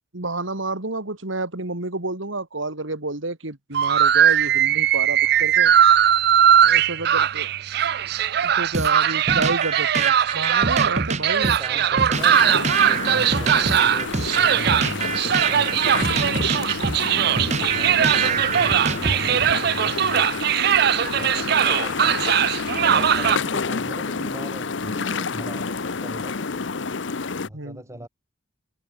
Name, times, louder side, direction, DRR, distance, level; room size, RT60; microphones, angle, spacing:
voice 1, 0.1-5.7 6.6-7.5 8.4-11.8 17.7-18.0 22.9-23.0 27.5-27.8, right 2 dB, 90° right, 3.1 m, -30 dB
sound 1, 3.7-23.4, right 9 dB, 55° right, 0.4 m, -20 dB
sound 2, 8.7-19.5, right 4 dB, 35° right, 1.0 m, -26 dB
voice 2, 11.4-16.7 17.3-20.4 21.1-22.3 22.8-26.7 27.4-28.1, equal, 15° right, 2.6 m, -40 dB
sound 3, 12.1-27.5, left 4 dB, 75° left, 0.9 m, -29 dB
open air
head